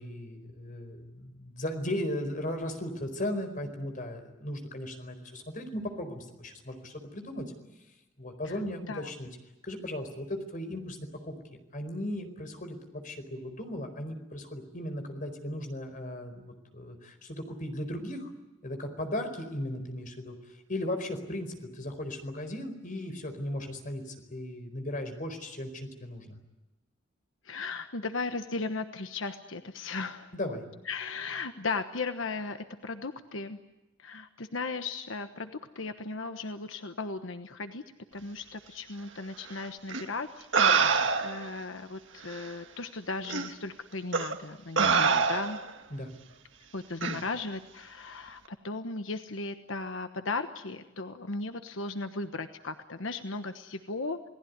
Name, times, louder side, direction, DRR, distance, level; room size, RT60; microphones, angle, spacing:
voice 1, 0.0-7.5 8.2-9.3 9.6-11.0 11.2-11.3 11.7-18.3 18.6-20.4 20.7-26.4 30.3-30.6 45.9-46.1, left 1 dB, 45° left, 7 dB, 4.5 m, -36 dB
voice 2, 27.4-30.3 30.9-33.6 34.0-37.8 38.1-45.6 46.7-54.3, left 3 dB, 85° left, 8 dB, 1.2 m, -36 dB
sound 1, 39.9-40.0 40.5-41.5 42.3-42.4 43.3-43.5 44.1-44.3 44.8-45.7 47.0-47.2, right 5 dB, 70° right, 1.9 m, -25 dB
29.0 x 19.0 x 9.6 m, 1.1 s
head